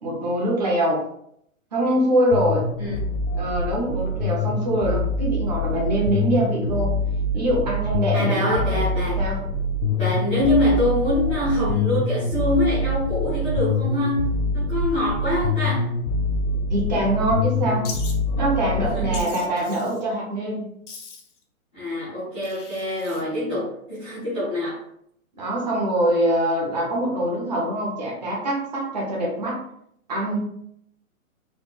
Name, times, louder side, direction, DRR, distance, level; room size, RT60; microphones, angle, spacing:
voice 1, 0.0-1.0 1.7-2.7 3.4-6.9 7.3-8.8 9.2-9.4 16.7-17.9 18.4-20.6 23.2-23.6 25.4-29.6 30.1-30.4, right 1 dB, 30° right, -3 dB, 0.8 m, -24 dB
sound 1, 2.3-19.2, left 2 dB, 90° left, 0.5 m, -25 dB
voice 2, 8.1-9.2 10.0-15.9 18.9-19.3 21.7-24.8, left 1 dB, 10° left, -18 dB, 0.5 m, -25 dB
Wild animals, 17.8-18.2 19.1-20.0 20.9-21.4 22.4-23.2, left 5 dB, 60° left, 0.9 m, -39 dB
4.1 x 2.1 x 3.3 m, 0.71 s
hypercardioid pair, 170°, 42 cm